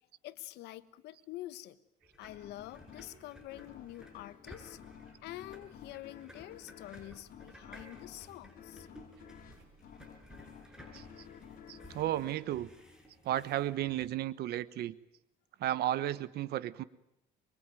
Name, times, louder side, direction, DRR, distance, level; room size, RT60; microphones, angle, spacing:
voice 1, 0.2-1.8 2.2-4.8 5.2-8.9, left 15 dB, 85° left, 14 dB, 1.3 m, -47 dB
sound 1, 2.0-14.1, equal, 5° right, 6.8 m, -56 dB
sound 2, 2.2-13.5, left 8 dB, 60° left, 5.2 m, -54 dB
voice 2, 11.7-12.7 13.2-14.9 15.6-16.8, right 13 dB, 70° right, 16 dB, 1.2 m, -33 dB
25.0 x 23.5 x 9.2 m, 0.84 s
cardioid pair, 110°, 17 cm